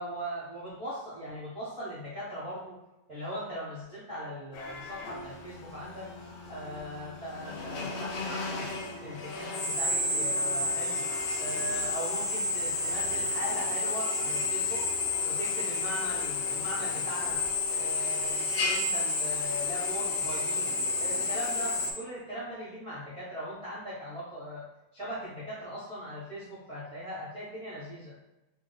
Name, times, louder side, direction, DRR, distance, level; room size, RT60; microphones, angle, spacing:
voice 1, 0.0-2.8 3.1-6.1 6.5-8.7 9.0-11.0 11.4-14.8 15.2-17.4 17.7-20.7 21.0-24.6 24.9-28.1, equal, 25° right, -10 dB, 0.7 m, -39 dB
Drill, 4.5-21.9, left 3 dB, 75° left, 1.2 m, -31 dB
3.0 x 2.4 x 3.9 m, 0.98 s
omnidirectional pair, 2.1 m